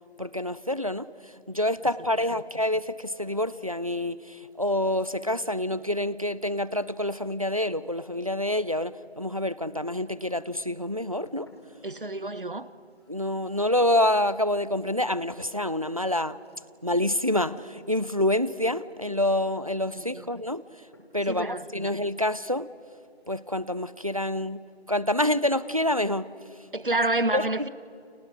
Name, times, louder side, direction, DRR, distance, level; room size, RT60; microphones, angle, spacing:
voice 1, 0.2-11.5 13.1-16.4 16.8-20.6 21.1-22.7 23.3-24.6 24.9-26.3 27.3-27.7, left 1 dB, 35° right, 0.6 m, -27 dB
sound 1, 9.8-10.4 10.7-19.6 20.5-20.7 20.9-21.4 21.7-21.8 22.2-22.3 22.5-22.7 23.0-23.5, left 1 dB, 25° left, 3.0 m, -59 dB
voice 2, 11.8-12.7 19.9-20.3 21.3-21.9 26.7-27.7, right 2 dB, 55° right, 1.1 m, -29 dB
30.0 x 28.0 x 6.5 m
figure-of-eight pair, 170°, 32 cm